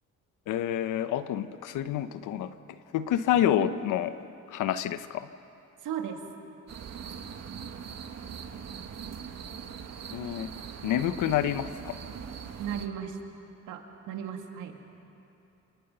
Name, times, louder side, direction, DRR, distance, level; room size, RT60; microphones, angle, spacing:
voice 1, 0.5-2.5 2.9-4.1 4.5-5.3 10.1-10.5 10.8-12.0, left 11 dB, 90° left, 12 dB, 1.0 m, -28 dB
voice 2, 3.6-3.9 5.8-6.2 12.6-13.2 13.7-14.7, right 9 dB, 90° right, 3 dB, 2.6 m, -36 dB
sound 1, 6.7-12.9, right 7 dB, 60° right, 1.9 m, -41 dB
28.5 x 27.5 x 5.7 m, 2.8 s
cardioid pair, 90°, 30 cm